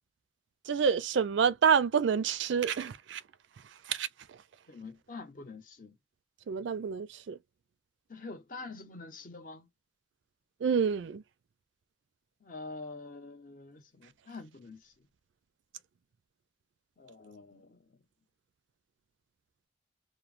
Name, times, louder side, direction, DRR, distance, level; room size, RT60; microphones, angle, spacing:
voice 1, 0.7-3.2 3.9-4.1 6.5-7.4 10.6-11.2, right 6 dB, 70° right, 0.4 m, -28 dB
voice 2, 4.7-6.0 8.1-9.7 12.4-15.1 17.0-18.0, left 3 dB, 45° left, 0.8 m, -46 dB
3.0 x 2.0 x 2.5 m
head